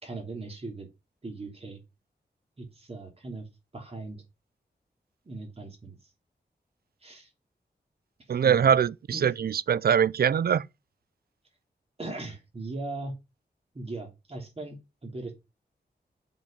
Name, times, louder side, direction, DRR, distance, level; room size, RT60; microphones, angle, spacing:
voice 1, 0.0-0.9 1.2-1.8 2.6-3.4 3.7-4.2 5.2-6.0 7.0-7.3 8.4-8.7 9.1-9.3 12.0-13.1 13.7-15.3, right 2 dB, 35° right, 3.3 m, -39 dB
voice 2, 8.3-10.7, right 8 dB, 60° right, 0.4 m, -23 dB
7.5 x 5.4 x 5.0 m
wide cardioid pair, 130°, 18 cm